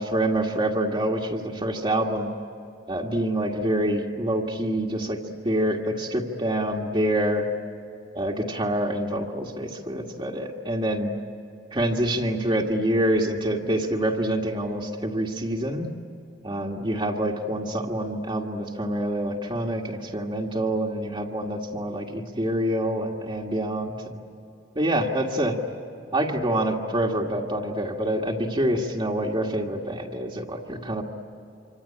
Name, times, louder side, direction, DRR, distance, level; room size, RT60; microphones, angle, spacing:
voice 1, 0.0-2.3 2.9-5.2 5.4-7.5 8.1-11.1 11.7-15.9 16.4-24.2 24.8-25.5 26.1-31.0, right 1 dB, 30° right, -1 dB, 1.8 m, -26 dB
26.0 x 26.0 x 8.7 m, 2.7 s
head